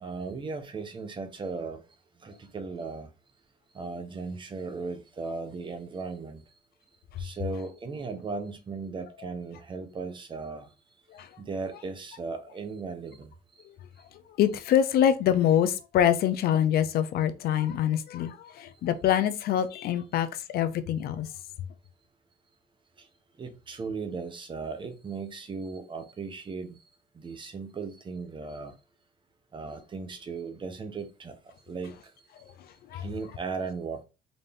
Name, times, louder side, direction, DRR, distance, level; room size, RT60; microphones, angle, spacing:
voice 1, 0.0-1.8 2.2-3.1 3.7-6.4 7.2-10.7 11.4-13.3 23.0-23.1 23.4-26.8 27.1-28.8 29.5-31.4 31.7-32.1 32.9-34.0, right 4 dB, 30° right, 0.8 m, -37 dB
voice 2, 14.4-21.3 32.5-33.1, left 10 dB, 65° left, 0.6 m, -25 dB
4.0 x 2.7 x 3.4 m
cardioid pair, 110°, 17 cm